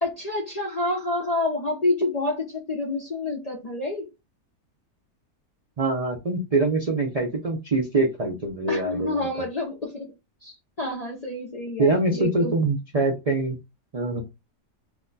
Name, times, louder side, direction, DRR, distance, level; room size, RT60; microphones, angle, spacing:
voice 1, 0.0-4.1 8.7-10.1 10.4-12.5, left 2 dB, 45° left, 0.5 m, -28 dB
voice 2, 5.8-9.3 11.8-13.6 13.9-14.2, right 2 dB, 60° right, 0.4 m, -24 dB
2.6 x 2.2 x 3.8 m
omnidirectional pair, 1.6 m